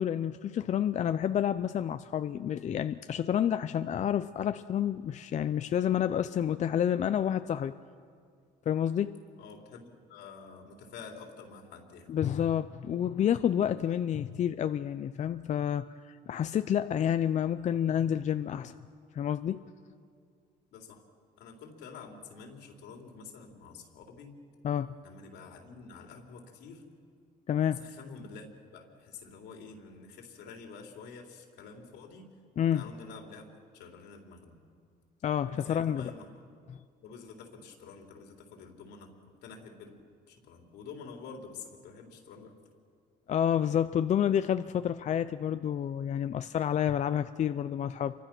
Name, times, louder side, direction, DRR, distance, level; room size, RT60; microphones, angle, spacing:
voice 1, 0.0-7.8 8.7-9.2 12.1-18.7 19.1-19.6 24.6-25.0 27.5-27.8 32.6-32.9 35.2-36.1 43.3-48.1, left 9 dB, 45° left, 11 dB, 0.6 m, -29 dB
voice 2, 9.4-12.1 20.7-21.0 21.4-24.3 25.0-26.8 27.6-32.3 32.7-34.6 35.5-36.3 37.0-40.0 40.3-42.5, left 5 dB, 80° left, 2 dB, 3.7 m, -48 dB
28.5 x 24.0 x 6.1 m, 2.2 s
cardioid pair, 110°, 17 cm